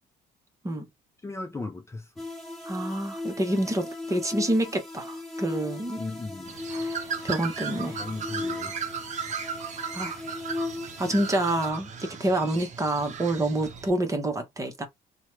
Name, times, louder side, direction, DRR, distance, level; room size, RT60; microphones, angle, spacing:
voice 1, 1.2-2.1 6.0-6.6 7.9-8.9, left 3 dB, 15° left, 0.6 m, -37 dB
sound 1, 2.2-11.7, left 2 dB, ahead, 1.2 m, -37 dB
voice 2, 2.7-6.0 6.7-8.0 9.9-10.2 11.0-14.9, right 1 dB, 20° right, 0.9 m, -28 dB
Bird, 6.5-13.9, right 6 dB, 45° right, 0.7 m, -36 dB
3.0 x 2.3 x 3.0 m
cardioid pair, 110°, 17 cm